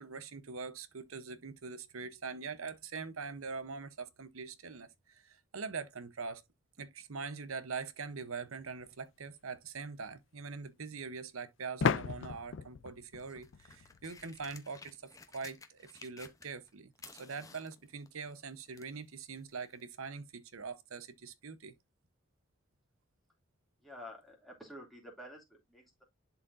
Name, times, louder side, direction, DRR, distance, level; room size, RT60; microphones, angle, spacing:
voice 1, 0.0-6.4 6.8-21.7, right 5 dB, 90° right, 0.9 m, -43 dB
sound 1, 8.8-8.9 11.8-14.4, left 6 dB, 60° left, 0.4 m, -35 dB
sound 2, 13.2-16.7 16.9-19.0 19.8-19.9, left 4 dB, 15° left, 0.8 m, -54 dB
voice 2, 23.8-26.0, equal, ahead, 2.5 m, -50 dB
11.0 x 4.3 x 2.6 m
head